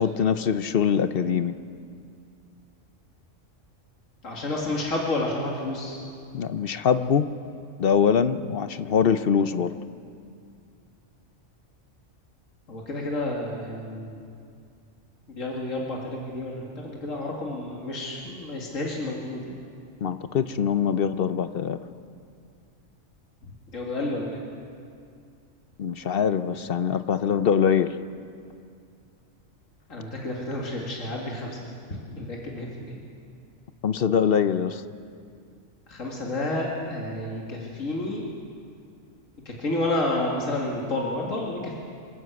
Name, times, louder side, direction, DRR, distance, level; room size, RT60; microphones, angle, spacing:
voice 1, 0.0-1.5 6.3-7.3 7.8-9.8 20.0-21.8 25.8-27.9 33.8-34.8, left 7 dB, 55° left, 11 dB, 0.8 m, -23 dB
voice 2, 4.2-6.0 12.7-14.3 15.3-19.6 23.4-24.4 29.9-33.0 35.9-38.2 39.5-41.8, left 2 dB, 80° left, -2 dB, 2.6 m, -30 dB
27.0 x 12.5 x 8.2 m, 2.4 s
omnidirectional pair, 1.3 m